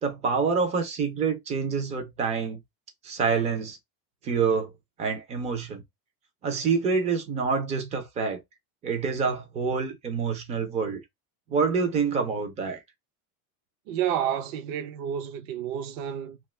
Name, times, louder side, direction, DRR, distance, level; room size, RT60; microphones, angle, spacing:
voice 1, 0.0-2.6 3.0-3.8 4.2-4.7 5.0-5.8 6.4-8.4 8.8-11.0 11.5-12.8, right 5 dB, 15° right, 0.3 m, -27 dB
voice 2, 13.9-16.5, right 9 dB, 60° right, 0.6 m, -30 dB
2.4 x 2.3 x 3.1 m
supercardioid pair, 145°, 46 cm